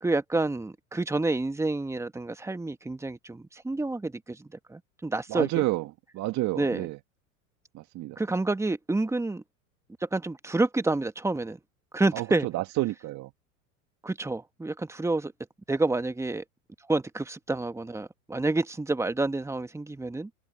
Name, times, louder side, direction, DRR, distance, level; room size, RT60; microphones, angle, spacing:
voice 1, 0.0-5.6 6.6-6.9 8.2-9.4 10.0-11.6 11.9-12.5 14.0-15.3 15.7-16.4 16.9-20.3, right 2 dB, 5° right, 1.7 m, -29 dB
voice 2, 5.3-7.0 7.7-8.2 12.1-13.3, right 18 dB, 45° right, 1.7 m, -30 dB
open air
hypercardioid pair, 90°, 40 cm